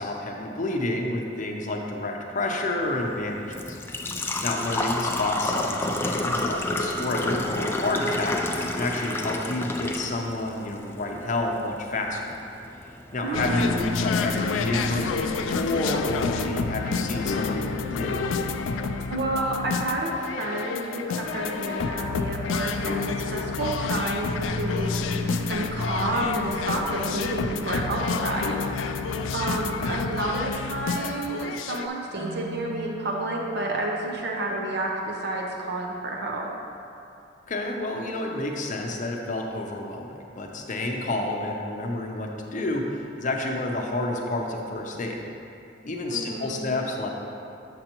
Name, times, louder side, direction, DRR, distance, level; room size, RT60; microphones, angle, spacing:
voice 1, 0.0-3.8 4.1-12.4 13.1-18.2 37.5-40.1 40.4-45.2 45.8-47.1, left 2 dB, 40° left, 1 dB, 0.7 m, -29 dB
Engine / Trickle dribble / Fill (with liquid), 2.8-14.8, left 2 dB, 10° left, 0.3 m, -31 dB
voice 2, 13.2-13.7 19.1-29.0 29.3-36.5 46.1-46.6, right 2 dB, 60° right, 0 dB, 0.7 m, -30 dB
sound 1, 13.3-31.9, left 4 dB, 85° left, 0.3 m, -29 dB
Marimba xylophone, 32.2-35.1, right 3 dB, 25° right, 1.1 m, -43 dB
7.7 x 6.5 x 3.0 m, 2.7 s
head